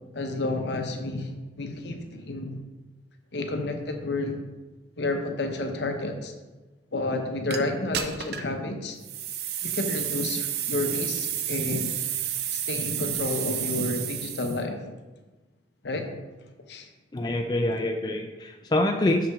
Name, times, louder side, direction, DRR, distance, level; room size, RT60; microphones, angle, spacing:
voice 1, 0.1-2.6 3.3-4.4 5.0-6.3 6.9-9.0 9.6-11.9 12.5-14.8 15.8-16.1 16.7-16.9, left 2 dB, 70° left, 5 dB, 0.8 m, -30 dB
sound 1, 7.5-7.6 7.9-8.5 9.0-14.6, right 10 dB, 55° right, 0.5 m, -31 dB
voice 2, 17.1-19.3, left 1 dB, 20° left, 3 dB, 0.4 m, -25 dB
6.2 x 5.8 x 3.5 m, 1.2 s
head